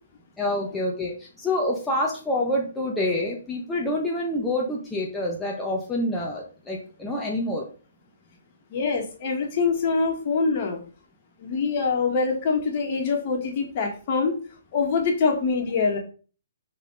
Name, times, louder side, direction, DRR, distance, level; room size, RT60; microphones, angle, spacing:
voice 1, 0.4-7.7, left 1 dB, 10° left, -3 dB, 1.2 m, -27 dB
voice 2, 8.7-10.8 11.4-14.4 14.7-16.0, left 4 dB, 45° left, 2 dB, 1.9 m, -24 dB
6.0 x 4.2 x 4.0 m, 0.38 s
hypercardioid pair, 135°, 0 cm